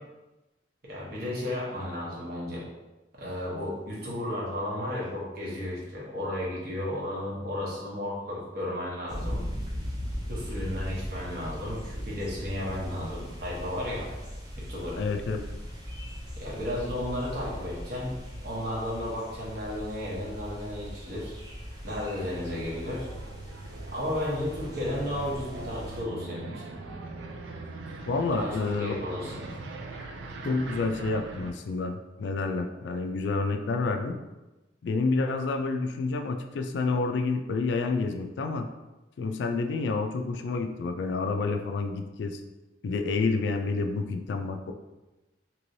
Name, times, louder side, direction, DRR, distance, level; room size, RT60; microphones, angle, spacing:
voice 1, 0.8-2.6 3.2-9.4 10.3-14.1 14.6-15.0 16.4-18.2 18.4-21.3 21.8-23.1 23.9-26.6 28.3-29.5, left 1 dB, 55° right, -5 dB, 0.9 m, -33 dB
sound 1, 9.1-26.0, equal, 20° right, 0.5 m, -39 dB
voice 2, 15.0-15.4 28.1-29.0 30.4-34.2 34.8-38.7 39.2-42.4 42.8-44.7, left 3 dB, 70° left, 6 dB, 0.3 m, -29 dB
sound 2, 21.3-31.5, right 3 dB, 75° right, 0.4 m, -41 dB
3.1 x 2.9 x 2.6 m, 1.1 s
head